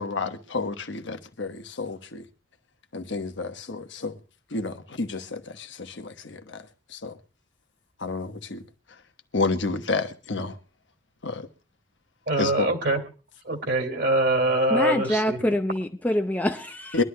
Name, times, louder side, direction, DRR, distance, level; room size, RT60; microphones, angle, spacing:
voice 1, 0.0-2.2 2.9-4.2 4.5-6.6 6.9-7.1 8.0-8.6 9.3-10.6 11.2-11.5 12.4-12.7 16.9-17.0, left 3 dB, 70° left, 1.1 m, -30 dB
voice 2, 12.3-13.0 13.5-15.4, right 1 dB, 60° right, 2.1 m, -23 dB
voice 3, 14.7-17.0, left 1 dB, 10° left, 0.5 m, -25 dB
24.0 x 11.5 x 2.2 m
head